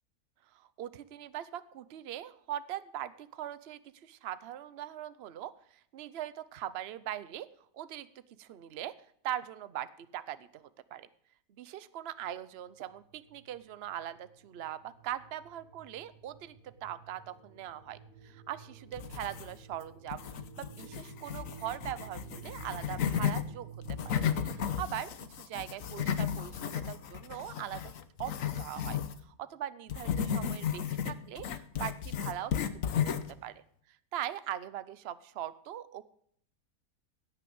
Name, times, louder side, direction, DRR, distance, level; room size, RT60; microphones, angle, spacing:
voice 1, 0.5-5.5 5.9-7.5 7.7-8.1 8.4-8.9 9.2-11.1 11.5-23.7 24.0-24.1 24.5-25.1 25.4-27.9 28.2-33.6 33.9-36.0, right 11 dB, 55° right, 15 dB, 0.9 m, -41 dB
sound 1, 12.8-24.7, right 6 dB, 70° right, 2.5 m, -52 dB
sound 2, 18.9-19.7 20.1-23.4 23.8-29.2 29.9-33.4, left 8 dB, 70° left, 1.3 m, -34 dB
17.0 x 6.0 x 7.9 m, 0.66 s
omnidirectional pair, 1.5 m